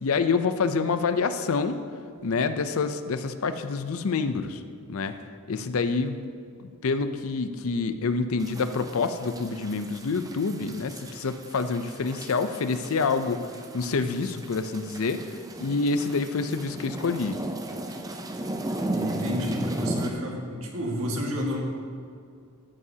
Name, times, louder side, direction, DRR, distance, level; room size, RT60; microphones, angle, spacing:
voice 1, 0.0-1.8 2.2-4.6 4.9-5.2 5.5-6.3 6.6-13.4 13.7-15.2 15.6-17.4, left 4 dB, 70° left, 10 dB, 0.5 m, -27 dB
sound 1, 8.4-20.1, right 1 dB, 15° right, 0.5 m, -36 dB
voice 2, 18.9-21.6, equal, 70° right, -1 dB, 1.8 m, -30 dB
14.0 x 9.6 x 2.8 m, 2.3 s
head